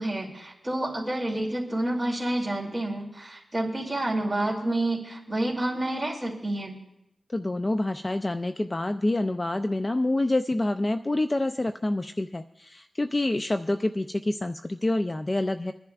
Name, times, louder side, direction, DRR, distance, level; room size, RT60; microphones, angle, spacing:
voice 1, 0.0-6.7, right 1 dB, 10° right, -1 dB, 2.5 m, -29 dB
voice 2, 7.3-15.7, left 2 dB, 25° left, 9 dB, 0.3 m, -27 dB
26.0 x 10.5 x 2.4 m, 0.83 s
wide cardioid pair, 100°, 0 cm